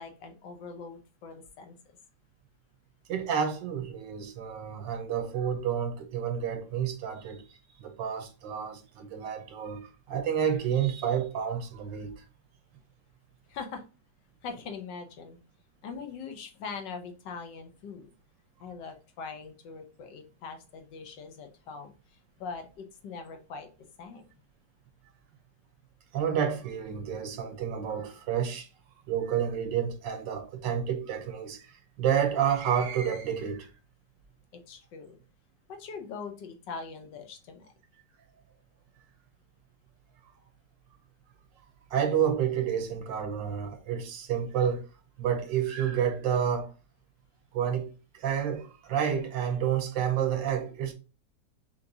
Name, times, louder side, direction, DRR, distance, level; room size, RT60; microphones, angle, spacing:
voice 1, 0.0-1.7 13.5-13.8 14.4-15.4 15.8-18.1 18.6-21.9 22.4-24.3 34.7-35.2 35.7-37.7, left 5 dB, 75° left, 1.5 m, -42 dB
voice 2, 3.1-12.1 26.1-28.7 29.1-33.7 41.9-44.9 45.2-46.7 47.5-50.9, right 8 dB, 90° right, 1.5 m, -30 dB
5.6 x 2.9 x 2.6 m
omnidirectional pair, 1.9 m